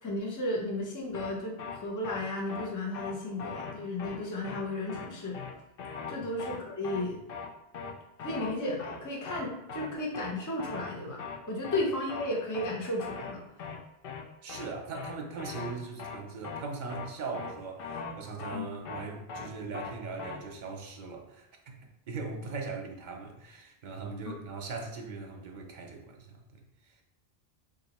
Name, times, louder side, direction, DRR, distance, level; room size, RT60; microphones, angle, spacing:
voice 1, 0.0-5.4 6.1-7.2 8.2-13.4 18.5-18.6, left 1 dB, 25° left, -1 dB, 0.6 m, -34 dB
sound 1, 1.1-1.3 1.6-1.8 2.0-2.2 2.5-2.7 2.9-3.1 3.4-3.7 4.0-4.2 4.4-4.6 4.9-5.1 5.3-5.5 5.8-6.1 6.4-6.6 6.8-7.0 7.3-7.5 7.7-7.9 8.2-8.5 8.8-9.0 9.3-9.4 9.7-9.9 10.1-10.3 10.6-10.9 11.2-11.4 11.6-11.8 12.1-12.3 12.5-12.7 13.0-13.3 13.6-13.8 14.0-14.2 14.5-14.7 14.9-15.1 15.4-15.7 16.0-16.2 16.4-16.6 16.9-17.1 17.3-17.5 17.8-18.1 18.4-18.6 18.9-19.0 19.3-19.5 19.7-19.9 20.2-20.4, left 5 dB, 65° left, 0.7 m, -39 dB
voice 2, 14.4-21.8 22.1-27.0, right 4 dB, 55° right, 2 dB, 0.7 m, -40 dB
2.8 x 2.6 x 4.1 m, 0.87 s
omnidirectional pair, 1.0 m